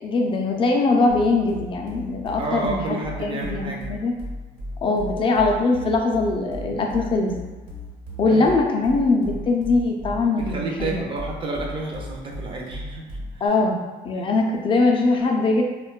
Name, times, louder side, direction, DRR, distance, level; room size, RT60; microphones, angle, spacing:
voice 1, 0.0-4.1 4.8-7.3 8.2-11.0 13.4-13.8 14.0-15.6, left 3 dB, 30° left, 1 dB, 0.4 m, -21 dB
sound 1, 1.1-13.5, equal, 75° right, 1.1 m, -36 dB
voice 2, 2.4-3.9 8.3-8.5 10.4-13.1 13.3-13.6 14.1-14.3, right 2 dB, 30° right, -1 dB, 0.5 m, -30 dB
2.5 x 2.2 x 2.2 m, 1.2 s
cardioid pair, 110°, 17 cm